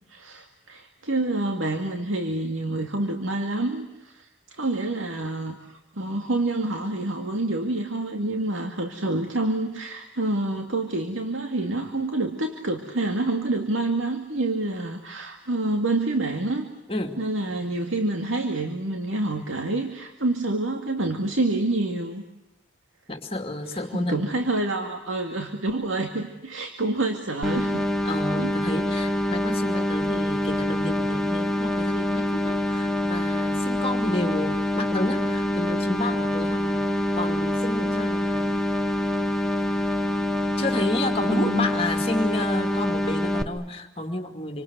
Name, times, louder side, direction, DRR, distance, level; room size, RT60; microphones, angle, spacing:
voice 1, 0.1-16.7 17.2-22.2 23.7-27.9 28.4-28.5 41.2-41.7, right 2 dB, 85° right, 5 dB, 2.3 m, -27 dB
voice 2, 23.1-24.3 28.0-36.9 37.1-38.6 40.6-44.6, left 1 dB, 30° left, 6 dB, 2.5 m, -30 dB
sound 1, 27.4-43.4, left 1 dB, 5° left, 1.2 m, -25 dB
28.0 x 25.5 x 8.1 m, 0.96 s
head